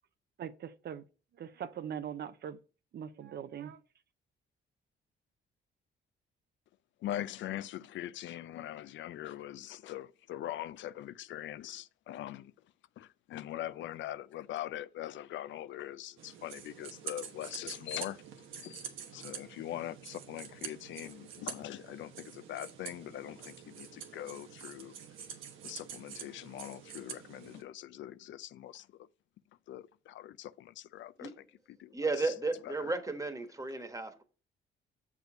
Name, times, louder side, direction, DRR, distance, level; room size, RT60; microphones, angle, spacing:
voice 1, 0.4-1.0 1.4-2.6 2.9-3.8, right 8 dB, 55° right, 0.5 m, -41 dB
voice 2, 7.0-12.5 13.0-18.2 18.6-18.9 19.1-24.9 25.6-28.9 29.7-31.3 31.8-31.9, left 12 dB, 70° left, 0.4 m, -42 dB
sound 1, 16.2-27.6, right 8 dB, 90° right, 1.1 m, -47 dB
voice 3, 31.9-34.2, right 3 dB, 15° right, 1.3 m, -34 dB
6.6 x 4.9 x 5.0 m
cardioid pair, 90°, 20 cm